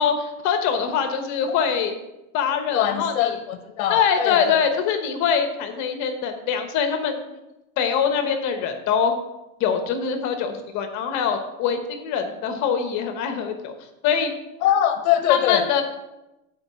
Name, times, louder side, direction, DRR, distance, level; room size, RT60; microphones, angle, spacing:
voice 1, 0.0-1.9 2.3-3.4 3.9-7.4 7.8-9.1 9.6-13.7 14.0-14.3 15.3-15.8, left 7 dB, 45° left, 6 dB, 1.1 m, -23 dB
voice 2, 2.7-4.6 14.6-15.6, left 11 dB, 70° left, 8 dB, 0.9 m, -22 dB
7.8 x 4.7 x 6.9 m, 0.96 s
supercardioid pair, 140°, 41 cm